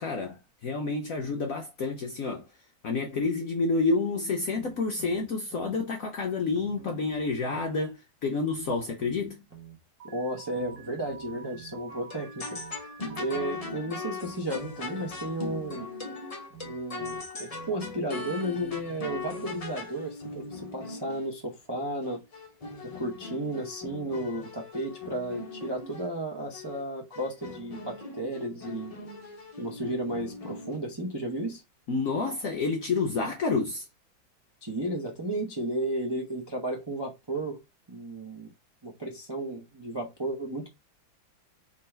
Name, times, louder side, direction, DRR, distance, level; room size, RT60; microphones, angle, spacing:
voice 1, 0.0-2.5 2.8-9.4 31.9-33.8, left 3 dB, 65° left, 0.8 m, -29 dB
sound 1, 4.5-5.8 6.5-7.8 8.5-9.8 10.5-11.8 12.5-13.8 14.5-15.8 16.5-17.8 18.5-19.8 20.5-20.6, right 6 dB, 10° right, 0.7 m, -49 dB
voice 2, 10.0-12.6 13.2-15.9 16.6-22.2 22.8-28.9 29.6-31.6 34.6-37.6 37.9-38.5 38.8-40.7, right 1 dB, 40° right, 0.3 m, -33 dB
Alarm, 10.0-13.5, right 7 dB, 75° right, 1.6 m, -48 dB
sound 2, 11.9-21.4 22.0-26.1 26.5-26.8 27.1-30.8, left 3 dB, 40° left, 0.5 m, -40 dB
3.6 x 3.0 x 4.4 m
omnidirectional pair, 2.2 m